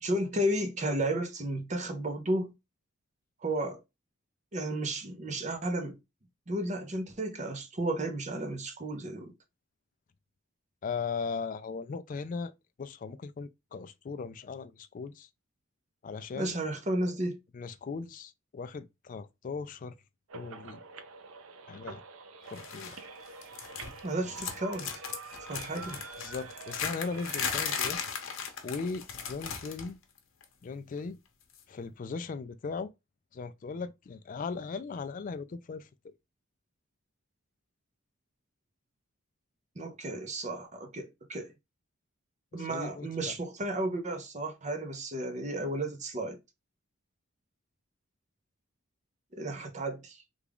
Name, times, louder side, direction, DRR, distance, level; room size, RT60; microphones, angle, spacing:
voice 1, 0.0-2.5 3.4-3.8 4.5-6.0 6.5-9.3 16.4-17.4 24.0-24.9 25.5-26.0 39.8-41.5 42.5-46.4 49.3-50.2, right 1 dB, 35° right, 0.6 m, -33 dB
voice 2, 10.8-12.5 12.8-15.3 16.0-16.6 17.5-20.0 20.3-20.8 21.7-22.0 22.5-23.0 24.2-24.3 26.2-28.0 28.6-30.0 30.6-31.2 31.7-32.9 33.3-36.1 42.6-43.3, left 4 dB, 40° left, 0.3 m, -38 dB
sound 1, 20.3-28.0, right 4 dB, 75° right, 0.5 m, -46 dB
sound 2, 22.6-23.0 23.3-24.1 24.3-29.9 30.2-30.4 31.5-31.6, left 7 dB, 70° left, 0.8 m, -36 dB
3.5 x 2.3 x 3.5 m
head